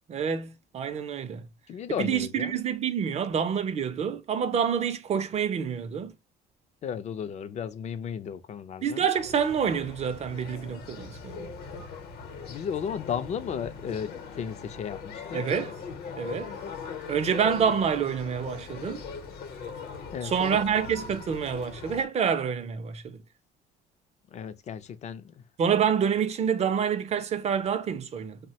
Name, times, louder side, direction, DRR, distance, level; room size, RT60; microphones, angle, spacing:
voice 1, 0.1-1.5 1.9-6.1 8.8-11.5 15.3-15.7 16.2-16.5 17.1-19.1 20.2-23.2 25.6-28.4, right 7 dB, 40° right, 0.4 m, -27 dB
voice 2, 1.7-2.5 6.8-9.0 12.5-15.4 20.1-20.6 24.3-25.3, left 8 dB, 40° left, 0.4 m, -34 dB
sound 1, 9.1-22.0, left 5 dB, 70° left, 0.8 m, -40 dB
3.1 x 2.1 x 2.7 m
cardioid pair, 110°, 17 cm